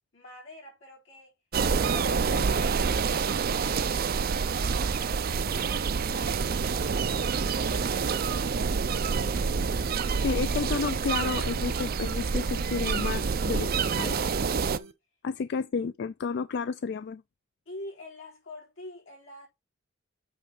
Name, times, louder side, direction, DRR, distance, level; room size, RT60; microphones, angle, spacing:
voice 1, 0.1-1.4 1.8-6.5 7.1-10.0 17.7-19.5, left 2 dB, 90° left, 4.0 m, -46 dB
sound 1, 1.5-14.8, right 5 dB, 50° right, 0.5 m, -27 dB
sound 2, 5.3-14.9, right 1 dB, 85° right, 1.0 m, -46 dB
voice 2, 10.2-14.2 15.2-17.2, left 5 dB, 60° left, 0.3 m, -31 dB
8.4 x 3.4 x 5.4 m
head